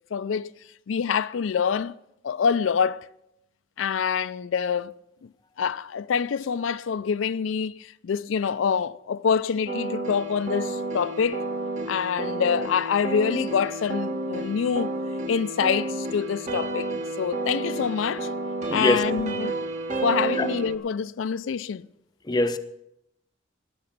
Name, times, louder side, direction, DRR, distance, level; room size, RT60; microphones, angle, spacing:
voice 1, 0.1-0.5 0.9-1.9 2.2-3.1 3.8-5.0 5.6-11.4 11.9-14.9 15.3-18.3 18.7-19.5 20.0-21.9, left 6 dB, 90° left, 0.4 m, -26 dB
sound 1, 9.7-20.8, right 2 dB, 40° right, 1.2 m, -31 dB
voice 2, 18.7-19.1 20.4-20.5 22.2-22.6, left 2 dB, 20° left, 0.6 m, -23 dB
19.0 x 6.9 x 6.6 m
head